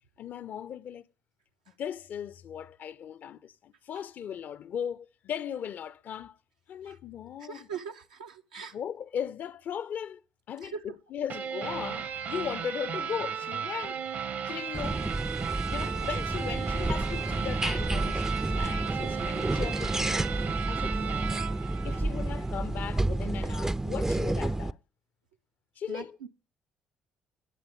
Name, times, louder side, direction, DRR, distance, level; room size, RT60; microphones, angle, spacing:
voice 1, 0.2-1.0 1.8-6.4 6.7-7.7 8.7-10.2 10.5-14.0 14.4-15.1 15.7-20.3 20.7-21.4 21.8-24.8 25.8-26.3, left 8 dB, 55° left, 0.6 m, -38 dB
voice 2, 7.4-8.7 10.6-10.8 25.9-26.3, right 6 dB, 80° right, 0.8 m, -41 dB
sound 1, 11.3-22.6, right 7 dB, 60° right, 1.1 m, -35 dB
sound 2, 14.7-24.7, right 2 dB, 15° right, 0.4 m, -30 dB
19.0 x 6.9 x 3.6 m
figure-of-eight pair, 45°, 4 cm